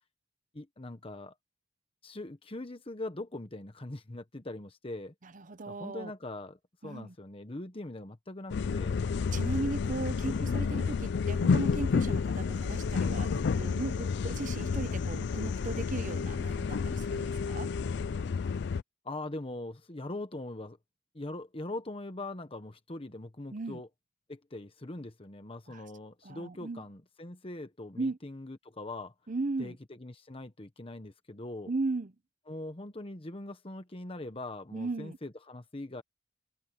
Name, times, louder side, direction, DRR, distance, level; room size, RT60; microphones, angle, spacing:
voice 1, 0.5-1.3 2.0-5.1 5.6-9.0 10.2-10.7 19.0-20.8 21.1-23.9 24.3-29.1 29.6-31.7 32.5-36.0, left 2 dB, 30° left, 1.1 m, -42 dB
voice 2, 5.3-6.1 6.8-7.1 9.3-17.7 23.5-23.8 25.7-25.8 26.2-26.8 28.0-28.2 29.3-29.8 31.7-32.1 34.7-35.2, right 3 dB, 45° right, 0.8 m, -36 dB
sound 1, 8.5-18.8, left 5 dB, 65° left, 0.4 m, -30 dB
head